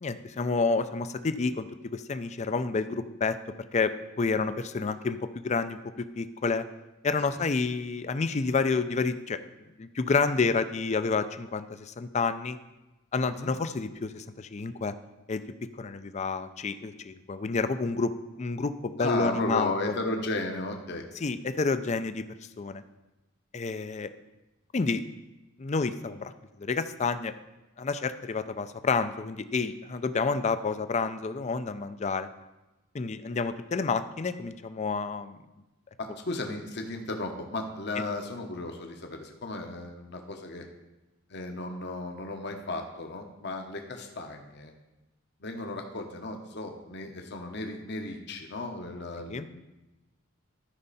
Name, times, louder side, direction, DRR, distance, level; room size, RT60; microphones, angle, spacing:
voice 1, 0.0-3.4 3.7-6.6 7.0-9.4 9.8-12.6 13.1-14.9 15.3-15.4 15.8-18.1 18.4-19.9 21.2-22.2 22.6-22.8 23.5-24.1 24.7-25.0 25.6-26.3 26.6-27.3 27.8-32.3 32.9-35.4 49.3-49.4, left 4 dB, 35° left, 11 dB, 0.4 m, -29 dB
voice 2, 19.0-21.1 36.0-40.7 41.3-44.7 45.4-49.6, left 2 dB, 55° left, 4 dB, 1.0 m, -35 dB
13.0 x 5.5 x 4.1 m, 1.0 s
head